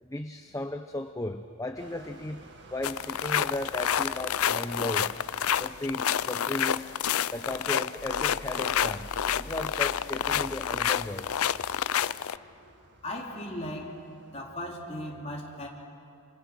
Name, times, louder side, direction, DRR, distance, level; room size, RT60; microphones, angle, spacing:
voice 1, 0.0-5.1 5.6-6.9 7.3-9.1 9.4-11.3, left 1 dB, 15° left, 6 dB, 0.7 m, -35 dB
sound 1, 1.7-14.5, right 1 dB, 55° right, 2.1 m, -49 dB
sound 2, 2.8-12.4, left 9 dB, 85° left, 0.5 m, -28 dB
voice 2, 13.0-14.0 14.3-15.7, left 1 dB, 30° left, -3 dB, 4.3 m, -37 dB
28.5 x 27.0 x 6.3 m, 2.5 s
head